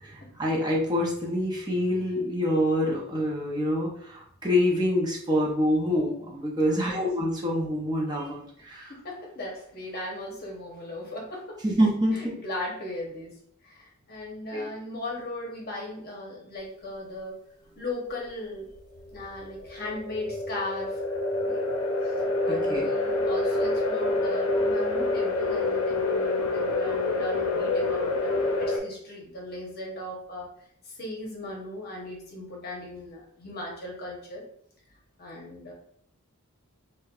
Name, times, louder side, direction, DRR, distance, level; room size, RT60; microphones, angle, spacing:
voice 1, 0.0-8.9 11.6-12.4 14.5-14.7 22.5-22.9, equal, 20° right, -3 dB, 0.6 m, -26 dB
voice 2, 6.7-7.1 8.9-11.6 12.1-13.4 13.6-17.4 17.8-18.7 19.1-21.0 21.4-21.7 22.4-28.3 28.6-30.5 30.9-34.5 35.2-35.7, left 1 dB, 45° left, -1 dB, 0.9 m, -37 dB
sound 1, 19.0-28.8, left 2 dB, 75° left, 0.6 m, -27 dB
5.1 x 2.2 x 2.3 m, 0.68 s
head